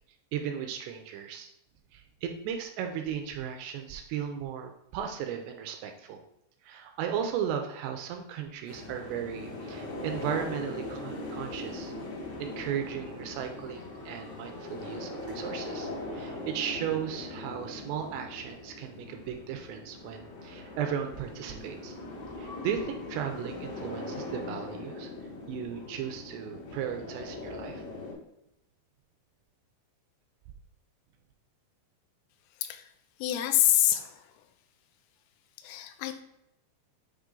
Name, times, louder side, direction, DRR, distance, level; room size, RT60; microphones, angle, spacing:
voice 1, 0.3-1.5 1.9-6.2 6.6-11.9 12.4-22.0 22.4-25.1 25.5-27.8, right 8 dB, 80° right, 5 dB, 2.5 m, -36 dB
sound 1, 8.7-28.1, left 2 dB, 65° left, 4.1 m, -40 dB
voice 2, 33.2-34.3 35.6-36.2, left 12 dB, 80° left, 7 dB, 2.8 m, -26 dB
8.5 x 3.1 x 3.7 m, 0.81 s
omnidirectional pair, 5.4 m